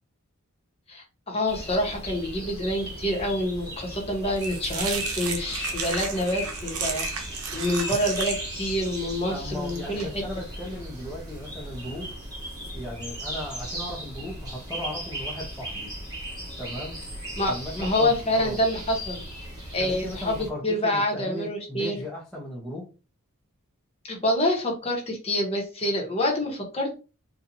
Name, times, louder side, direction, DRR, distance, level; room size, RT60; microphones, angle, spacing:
voice 1, 0.9-10.1 17.4-19.2 19.7-22.0 24.0-26.9, left 1 dB, 25° left, 0 dB, 1.1 m, -27 dB
sound 1, 1.5-20.5, equal, 20° right, 1.4 m, -37 dB
sound 2, 3.9-12.1, right 5 dB, 80° right, 0.7 m, -35 dB
voice 2, 9.3-12.1 12.7-15.9 16.6-17.0 17.5-18.6 19.8-22.9, left 1 dB, 5° left, -5 dB, 0.8 m, -37 dB
4.2 x 2.4 x 2.7 m, 0.32 s
head